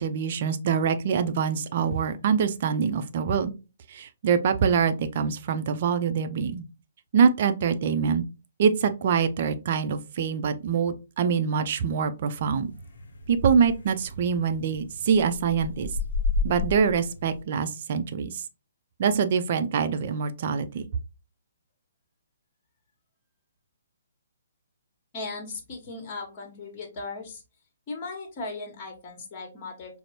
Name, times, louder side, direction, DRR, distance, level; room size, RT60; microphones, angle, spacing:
voice 1, 0.0-3.5 3.9-6.6 7.1-8.2 8.6-12.7 13.3-15.9 16.4-18.4 19.0-20.8, right 6 dB, 45° right, 0.4 m, -24 dB
sound 1, 12.4-17.4, left 3 dB, 60° left, 0.7 m, -33 dB
voice 2, 25.1-27.4 27.9-30.0, left 3 dB, 35° left, 1.2 m, -37 dB
5.0 x 2.0 x 2.9 m
figure-of-eight pair, 130°, 0 cm